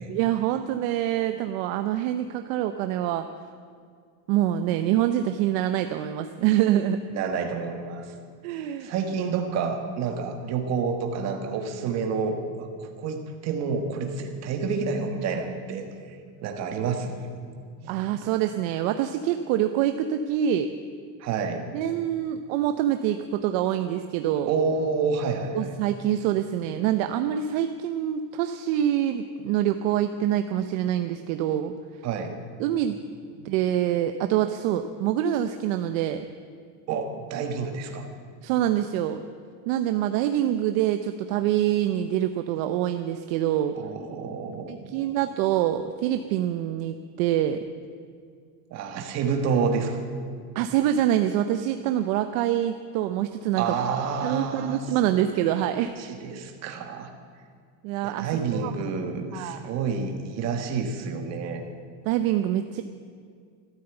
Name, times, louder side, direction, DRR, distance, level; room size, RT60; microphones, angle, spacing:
voice 1, 0.1-3.3 4.3-7.0 8.4-8.9 17.9-20.7 21.7-24.5 25.5-31.7 32.6-33.0 33.4-36.2 38.4-39.2 39.7-43.8 44.7-47.6 50.5-53.7 54.2-56.0 57.8-58.7 59.3-59.7 62.1-62.8, right 11 dB, 55° right, 8 dB, 0.7 m, -25 dB
voice 2, 7.1-8.2 8.8-15.9 16.4-17.2 17.8-18.3 21.2-21.6 24.5-25.7 32.0-32.4 33.3-33.6 36.9-38.1 43.7-45.1 48.7-50.0 53.6-54.8 55.1-55.2 56.0-57.1 58.0-61.7, right 5 dB, 35° right, 5 dB, 1.5 m, -29 dB
13.5 x 13.0 x 8.0 m, 2.2 s
cardioid pair, 180°, 48 cm